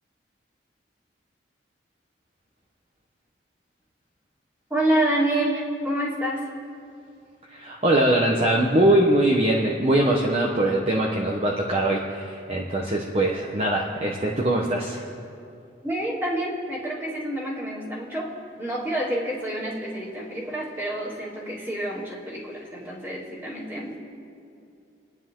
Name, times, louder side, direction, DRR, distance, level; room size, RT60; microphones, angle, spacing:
voice 1, 4.7-6.5 15.8-18.3 18.6-24.0, right 1 dB, 10° right, -5 dB, 2.9 m, -28 dB
voice 2, 7.5-15.0, right 1 dB, 30° right, -2 dB, 1.1 m, -22 dB
29.5 x 10.0 x 3.8 m, 2.5 s
head